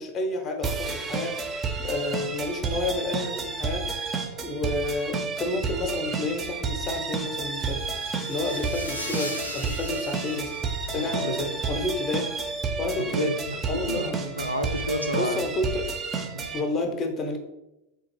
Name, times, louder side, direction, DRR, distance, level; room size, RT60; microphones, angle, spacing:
voice 1, 0.0-4.2 4.4-7.9 8.3-10.6 10.9-12.3 12.8-13.3 13.7-14.4 15.1-15.9 16.5-17.4, left 2 dB, 30° left, 4 dB, 0.6 m, -30 dB
sound 1, 0.6-16.6, right 4 dB, 20° right, 0.4 m, -31 dB
sound 2, 7.6-11.4, left 1 dB, 85° left, 0.5 m, -39 dB
voice 2, 10.9-11.5 13.0-15.5 16.3-16.5, equal, 90° right, 5 dB, 0.3 m, -31 dB
3.7 x 2.5 x 2.9 m, 0.92 s
figure-of-eight pair, 90°, 0 cm